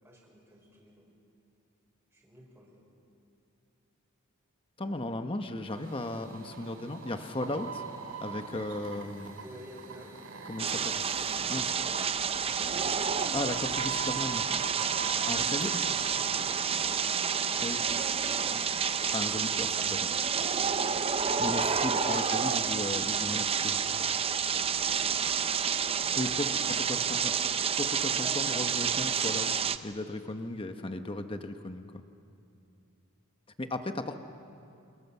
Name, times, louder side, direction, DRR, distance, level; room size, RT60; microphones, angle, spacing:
voice 1, 0.0-1.1 2.1-2.8 9.4-10.1 16.3-16.7 26.0-26.5, equal, 10° right, -6 dB, 5.0 m, -52 dB
voice 2, 4.8-7.8 8.2-9.3 10.5-11.0 11.5-11.8 13.3-14.5 15.3-15.8 17.6-17.8 19.1-20.1 21.4-23.8 26.1-27.4 27.7-31.9 33.6-34.2, left 1 dB, 25° left, 7 dB, 1.1 m, -36 dB
sound 1, 5.7-19.2, right 5 dB, 55° right, 3.6 m, -43 dB
sound 2, 10.6-29.8, right 6 dB, 25° right, 0.6 m, -29 dB
29.5 x 27.0 x 7.1 m, 2.6 s
head